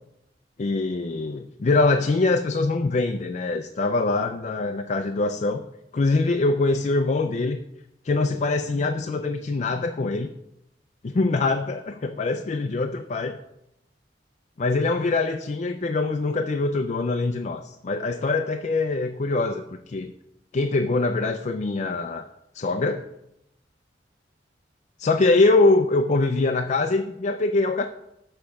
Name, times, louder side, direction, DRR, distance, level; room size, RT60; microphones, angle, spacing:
voice 1, 0.6-5.6 5.9-7.6 8.0-10.3 11.0-13.4 14.6-20.1 20.5-22.2 22.5-23.1 25.0-27.9, left 3 dB, 40° left, 6 dB, 0.4 m, -23 dB
7.0 x 6.8 x 5.1 m, 0.84 s
head